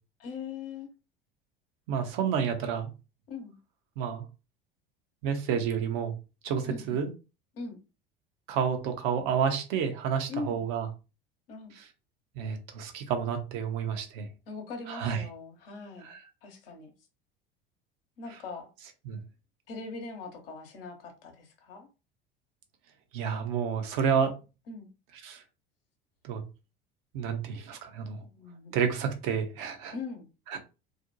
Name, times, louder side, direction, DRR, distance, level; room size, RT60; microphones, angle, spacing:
voice 1, 0.2-0.9 3.3-3.5 6.6-7.0 7.5-7.8 10.3-10.6 11.5-11.7 14.5-16.1 16.4-16.9 18.2-18.7 19.7-21.9 24.7-24.9 28.2-28.7 29.9-30.3, left 4 dB, 75° left, 0.8 m, -41 dB
voice 2, 1.9-2.9 4.0-4.2 5.2-6.1 6.4-7.1 8.5-10.9 12.4-14.3 14.9-15.2 16.1-16.2 19.1-19.2 23.1-24.4 25.2-25.4 26.2-26.4 27.1-28.2 28.7-29.9 30.5-30.6, right 7 dB, 60° right, 0.7 m, -30 dB
2.5 x 2.1 x 2.6 m
hypercardioid pair, 70°, 29 cm